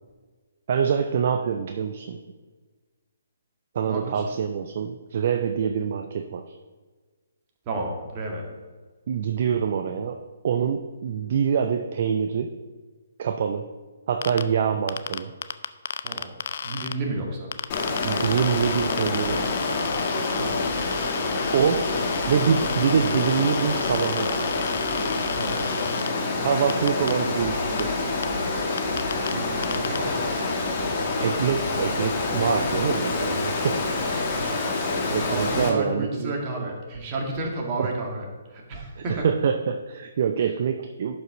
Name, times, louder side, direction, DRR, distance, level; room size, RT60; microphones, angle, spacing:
voice 1, 0.7-2.2 3.7-6.5 9.1-12.5 13.2-13.7 14.1-15.3 18.0-19.6 21.5-21.9 22.3-24.5 26.4-28.0 31.2-33.8 35.1-36.3 37.8-37.9 39.0-41.2, right 7 dB, 50° right, 7 dB, 0.5 m, -25 dB
voice 2, 3.9-4.2 7.7-8.5 16.0-16.3 16.6-17.5 20.4-20.7 25.3-25.7 29.3-30.3 33.6-33.9 34.3-34.6 35.0-38.3 38.5-39.3, right 2 dB, 30° right, 0 dB, 1.9 m, -32 dB
sound 1, 14.2-14.4 14.9-16.9 17.5-26.1 26.7-27.1 27.8-27.9 28.2-28.3 28.8-29.3 29.6-30.0, left 7 dB, 55° left, 0.4 m, -33 dB
Water, 17.7-35.7, left 3 dB, 35° left, 1.7 m, -27 dB
11.5 x 5.3 x 3.9 m, 1.4 s
figure-of-eight pair, 135°, 0 cm